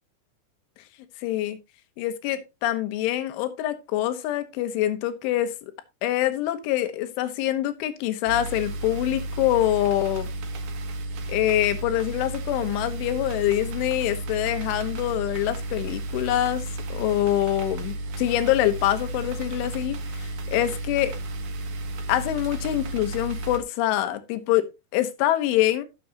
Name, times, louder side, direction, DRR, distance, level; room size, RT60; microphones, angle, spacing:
voice 1, 1.2-1.6 2.0-5.7 6.0-10.3 11.3-16.6 16.9-21.1 22.1-25.9, left 13 dB, 85° left, 3.5 m, -25 dB
sound 1, 8.3-23.6, right 1 dB, 75° right, 1.7 m, -33 dB
15.0 x 6.9 x 2.9 m
omnidirectional pair, 5.4 m